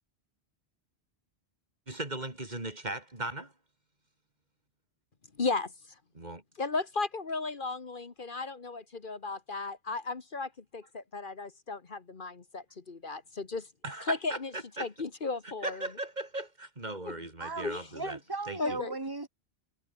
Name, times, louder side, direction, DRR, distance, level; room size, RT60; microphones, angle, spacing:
voice 1, 1.9-3.5 6.1-6.4 13.8-14.9 15.6-18.2 18.5-18.8, right 2 dB, 40° right, 3.5 m, -38 dB
voice 2, 5.4-5.7 6.6-13.7 14.1-14.5 14.8-15.9 17.0-17.1 17.6-17.9 18.6-18.9, left 3 dB, 50° left, 1.5 m, -35 dB
voice 3, 17.4-19.3, right 3 dB, 20° right, 1.6 m, -37 dB
omnidirectional pair, 1.1 m